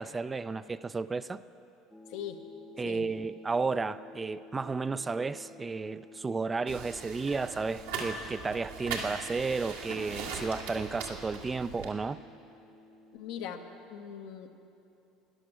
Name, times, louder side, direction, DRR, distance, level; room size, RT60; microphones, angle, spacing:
voice 1, 0.0-1.4 2.8-12.2, right 4 dB, 25° right, 14 dB, 0.3 m, -33 dB
sound 1, 1.9-13.9, left 2 dB, 5° left, 0.8 m, -54 dB
sound 2, 6.7-11.9, right 4 dB, 85° right, 1.8 m, -39 dB
voice 2, 13.1-14.5, left 8 dB, 70° left, 5 dB, 0.9 m, -40 dB
12.5 x 10.5 x 6.6 m, 2.8 s
hypercardioid pair, 75°, 0 cm